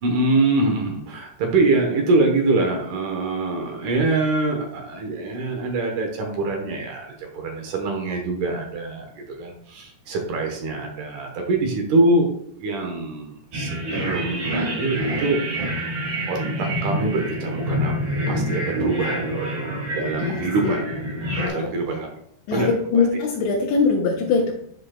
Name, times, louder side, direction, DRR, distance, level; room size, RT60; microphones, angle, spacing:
voice 1, 0.0-12.3 12.6-15.9 16.3-17.9 18.3-20.9 21.5-22.1 22.5-23.0, right 2 dB, 70° right, 2 dB, 2.0 m, -24 dB
sound 1, 13.5-21.5, equal, 50° right, 1.8 m, -27 dB
voice 2, 20.2-20.8 21.3-21.7 22.5-24.5, left 4 dB, 80° left, -4 dB, 3.2 m, -22 dB
11.0 x 5.2 x 2.3 m, 0.68 s
omnidirectional pair, 5.2 m